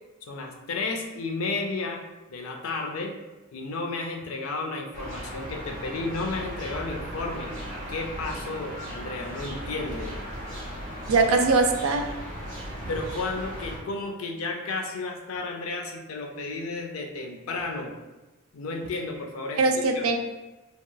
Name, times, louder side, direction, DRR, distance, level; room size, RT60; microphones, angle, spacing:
voice 1, 0.3-2.0 2.3-3.1 3.5-7.5 7.9-10.1 12.9-17.9 18.5-20.0, left 3 dB, 85° left, 2 dB, 0.5 m, -32 dB
sound 1, 4.9-13.8, equal, 40° right, 0.7 m, -37 dB
voice 2, 11.1-12.1 19.6-20.2, right 3 dB, 90° right, 5 dB, 0.4 m, -21 dB
2.9 x 2.8 x 2.2 m, 1.1 s
head